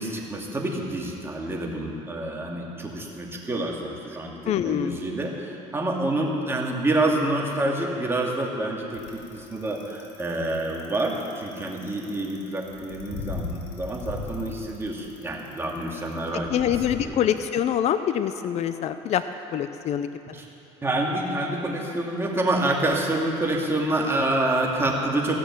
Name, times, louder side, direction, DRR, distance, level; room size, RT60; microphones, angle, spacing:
voice 1, 0.0-16.5 17.0-17.3 20.3-20.5 20.8-25.4, right 1 dB, 15° right, -1 dB, 2.4 m, -27 dB
voice 2, 4.5-5.0 16.5-19.2 19.5-20.1, left 10 dB, 55° left, 10 dB, 0.6 m, -25 dB
Bicycle, 8.9-17.0, left 3 dB, 70° left, 2.4 m, -37 dB
16.0 x 6.5 x 9.5 m, 2.8 s
supercardioid pair, 95°, 14 cm